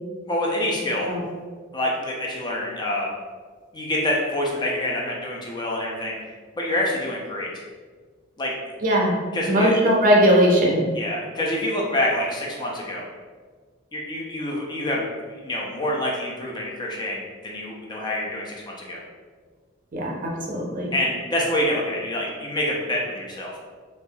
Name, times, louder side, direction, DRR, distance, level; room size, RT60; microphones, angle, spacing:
voice 1, 0.3-1.1 1.7-3.1 3.7-6.1 6.6-7.5 8.4-8.5 9.3-9.7 11.0-13.0 13.9-19.0 20.9-23.6, left 1 dB, 20° left, -2 dB, 0.4 m, -26 dB
voice 2, 8.8-9.2 9.5-10.8 19.9-20.9, equal, 40° right, -1 dB, 0.5 m, -19 dB
3.3 x 2.5 x 2.2 m, 1.5 s
head